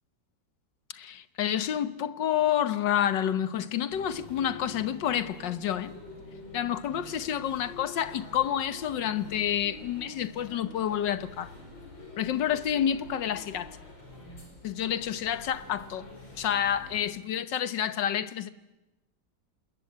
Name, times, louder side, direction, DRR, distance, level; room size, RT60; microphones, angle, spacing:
voice 1, 0.9-5.9 6.5-11.5 12.2-13.8 14.6-16.1 16.4-18.5, left 10 dB, 70° left, 1.7 m, -29 dB
sound 1, 3.9-17.0, left 2 dB, 90° left, 6.3 m, -47 dB
27.0 x 21.5 x 8.6 m
omnidirectional pair, 2.1 m